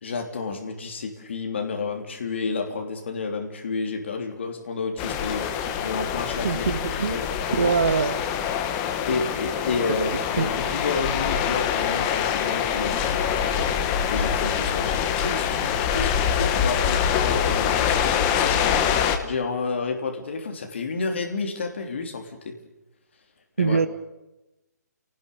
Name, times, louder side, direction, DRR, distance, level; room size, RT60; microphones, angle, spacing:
voice 1, 0.0-5.4 5.8-6.7 7.1-7.8 9.1-13.2 14.1-18.9 19.2-22.5 23.6-23.8, left 4 dB, 40° left, 3 dB, 3.5 m, -30 dB
sound 1, 5.0-19.2, left 8 dB, 10° left, 0.9 m, -24 dB
voice 2, 6.4-7.2 7.5-8.2 10.4-10.5 23.6-23.9, right 5 dB, 50° right, 13 dB, 1.4 m, -23 dB
29.5 x 19.0 x 6.9 m, 0.97 s
hypercardioid pair, 175°, 10 cm